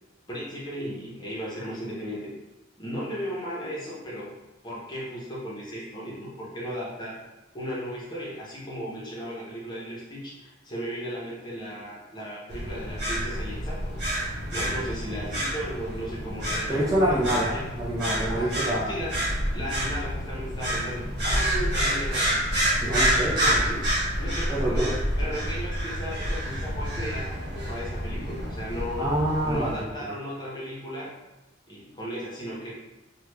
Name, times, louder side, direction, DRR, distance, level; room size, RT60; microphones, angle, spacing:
voice 1, 0.3-2.3 2.8-4.3 4.6-7.2 7.5-13.9 14.5-17.6 18.3-19.1 19.5-22.4 23.4-23.9 24.2-24.9 25.2-29.1 29.4-31.2 31.7-32.7, equal, 20° left, -6 dB, 0.9 m, -35 dB
sound 1, 12.5-29.8, equal, 55° right, 1.3 m, -28 dB
voice 2, 16.7-18.9 22.8-23.5 24.5-24.9 29.0-29.7, right 1 dB, 20° right, -7 dB, 0.6 m, -26 dB
3.0 x 2.3 x 3.3 m, 1.0 s
head